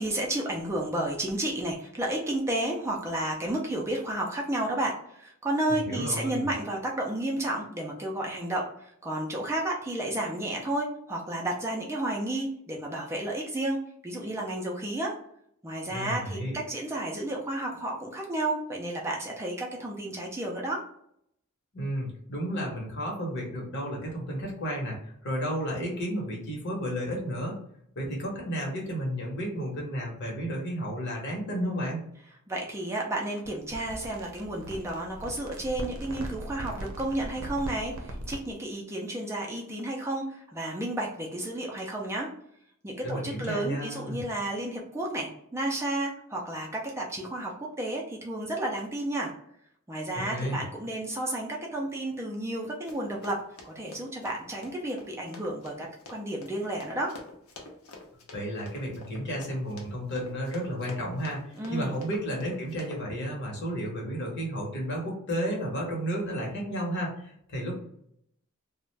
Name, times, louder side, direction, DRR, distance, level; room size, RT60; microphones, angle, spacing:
voice 1, 0.0-13.8 14.0-15.1 15.6-20.8 32.5-42.3 42.8-49.3 49.9-57.1 61.6-62.0, right 1 dB, 15° right, -1 dB, 0.4 m, -32 dB
voice 2, 5.7-6.5 15.9-16.6 21.7-27.5 28.0-32.1 43.0-44.2 50.2-50.6 58.3-67.7, equal, 55° left, -1 dB, 0.9 m, -32 dB
sound 1, 33.4-38.5, right 1 dB, 85° right, 0.6 m, -39 dB
Run, 52.9-63.0, left 3 dB, 85° left, 0.6 m, -48 dB
2.4 x 2.1 x 3.1 m, 0.70 s
head